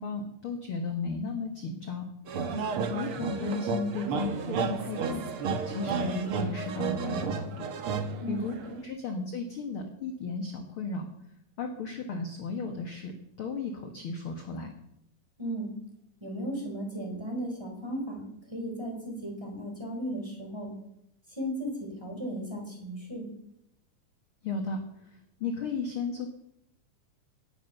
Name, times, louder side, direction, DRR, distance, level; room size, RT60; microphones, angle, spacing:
voice 1, 0.0-2.1 2.9-5.3 5.6-7.7 8.3-8.6 8.8-11.1 11.6-13.1 13.4-14.7 24.4-26.3, left 4 dB, 50° left, 4 dB, 2.0 m, -34 dB
sound 1, 2.3-8.8, right 5 dB, 55° right, 1.7 m, -32 dB
voice 2, 8.2-8.8 15.4-15.7 16.2-20.7 21.3-23.3, right 1 dB, 10° right, 0 dB, 4.0 m, -36 dB
18.0 x 9.0 x 6.8 m, 0.77 s
omnidirectional pair, 3.7 m